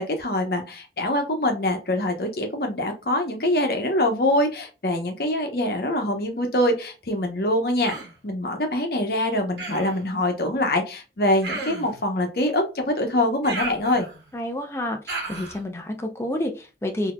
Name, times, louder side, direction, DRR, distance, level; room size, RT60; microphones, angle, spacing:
voice 1, 0.0-7.9 8.2-14.1, left 1 dB, 60° left, 0.8 m, -24 dB
Human voice, 7.8-8.2 9.6-10.0 11.4-12.0 13.4-14.3 15.1-15.6, right 3 dB, 75° right, 1.1 m, -33 dB
voice 2, 14.3-17.1, left 1 dB, 15° left, 0.4 m, -29 dB
4.0 x 2.7 x 2.2 m
head